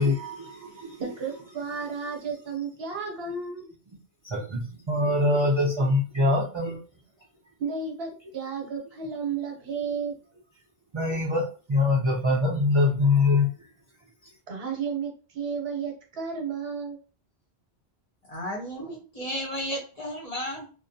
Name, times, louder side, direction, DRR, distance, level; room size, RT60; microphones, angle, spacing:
voice 1, 0.0-1.0 4.2-6.8 10.9-13.5, left 2 dB, 40° right, 0.4 m, -24 dB
voice 2, 1.0-3.7 7.6-10.1 14.5-17.0, right 5 dB, 65° right, 0.9 m, -32 dB
voice 3, 18.3-20.7, equal, 40° left, 0.7 m, -33 dB
2.5 x 2.1 x 2.6 m
omnidirectional pair, 1.1 m